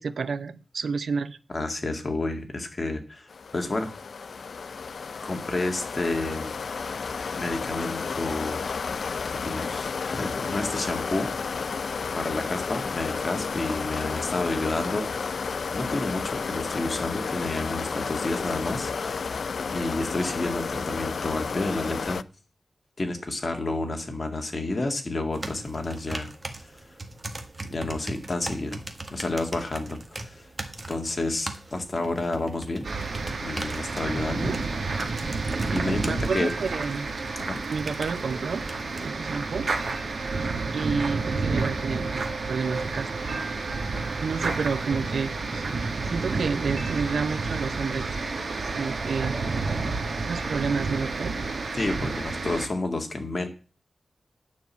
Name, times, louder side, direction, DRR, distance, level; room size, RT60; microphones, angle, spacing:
voice 1, 0.0-1.4 34.2-34.6 36.0-37.1 37.7-38.6 39.0-39.7 40.7-43.1 44.2-45.8 46.1-48.1 48.8-49.4 50.2-51.3, right 5 dB, 90° right, 14 dB, 0.6 m, -30 dB
voice 2, 1.5-3.9 5.2-6.5 7.0-11.6 12.1-15.2 15.7-19.4 19.7-22.2 23.0-26.3 26.6-26.7 27.7-28.8 29.1-30.5 30.9-32.9 33.4-34.5 35.6-36.5 37.4-37.6 51.7-53.5, left 2 dB, 35° left, 4 dB, 1.9 m, -30 dB
sound 1, 3.3-22.2, left 5 dB, 70° left, 0.4 m, -32 dB
sound 2, 25.3-39.1, right 2 dB, 25° right, 1.5 m, -40 dB
sound 3, 32.8-52.7, right 3 dB, 65° right, 1.7 m, -30 dB
9.5 x 6.0 x 8.1 m, 0.36 s
wide cardioid pair, 135°, 0 cm